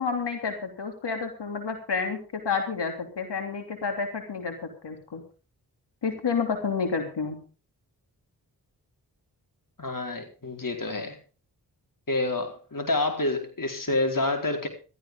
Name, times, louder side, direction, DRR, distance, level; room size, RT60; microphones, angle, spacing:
voice 1, 0.0-5.2 6.0-7.4, left 5 dB, 80° left, 5 dB, 3.2 m, -30 dB
voice 2, 9.8-11.2 12.1-14.7, left 2 dB, 50° left, 4 dB, 4.5 m, -28 dB
17.0 x 13.5 x 3.8 m, 0.35 s
cardioid pair, 45°, 41 cm